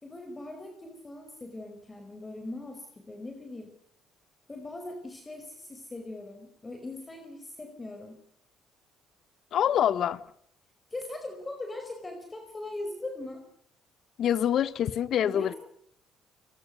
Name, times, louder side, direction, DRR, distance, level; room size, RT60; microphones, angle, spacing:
voice 1, 0.0-3.7 4.5-8.2 10.9-13.4 15.2-15.6, left 2 dB, 20° left, 5 dB, 5.0 m, -40 dB
voice 2, 9.5-10.2 14.2-15.5, left 10 dB, 60° left, 17 dB, 1.2 m, -25 dB
28.5 x 20.0 x 6.7 m, 0.68 s
cardioid pair, 105°, 0 cm